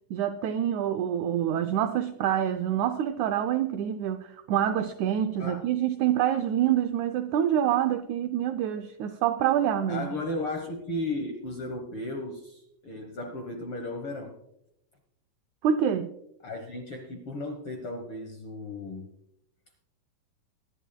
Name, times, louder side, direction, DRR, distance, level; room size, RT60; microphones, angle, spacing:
voice 1, 0.1-10.1 15.6-16.1, right 10 dB, 90° right, 9 dB, 1.6 m, -26 dB
voice 2, 9.9-14.4 16.4-19.1, left 2 dB, 65° left, 4 dB, 1.4 m, -35 dB
23.0 x 11.0 x 2.2 m, 0.81 s
omnidirectional pair, 4.1 m